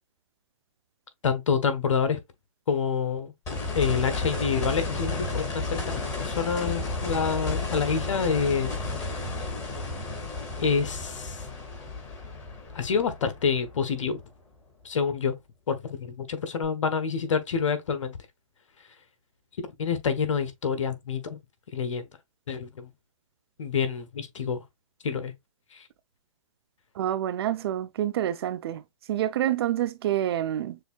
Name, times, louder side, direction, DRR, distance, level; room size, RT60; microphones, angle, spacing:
voice 1, 1.2-2.2 2.7-3.3 3.7-8.8 10.6-11.4 12.7-14.2 14.8-15.4 15.7-18.2 19.6-21.4 21.7-22.0 22.5-22.9 23.6-24.6 25.0-25.3 25.7-25.9, left 6 dB, 70° left, 1.1 m, -27 dB
sound 1, 3.4-14.4 16.6-16.7, left 3 dB, 20° left, 2.4 m, -32 dB
voice 2, 27.0-28.8 29.1-30.8, right 11 dB, 50° right, 0.5 m, -27 dB
6.5 x 2.7 x 2.3 m
hypercardioid pair, 135°, 17 cm